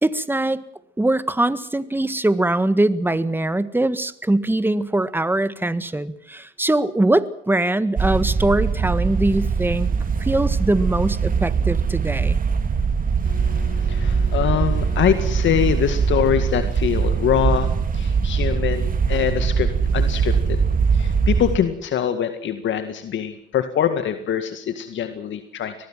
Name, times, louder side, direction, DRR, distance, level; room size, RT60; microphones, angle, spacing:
voice 1, 0.0-0.6 1.0-9.9 10.2-12.4, right 1 dB, 10° right, 14 dB, 1.7 m, -22 dB
sound 1, 8.0-21.6, right 6 dB, 45° right, 2.5 m, -21 dB
voice 2, 13.3-20.6 20.9-25.7, left 9 dB, 70° left, 9 dB, 2.0 m, -24 dB
24.0 x 19.5 x 7.5 m, 0.67 s
cardioid pair, 90°, 20 cm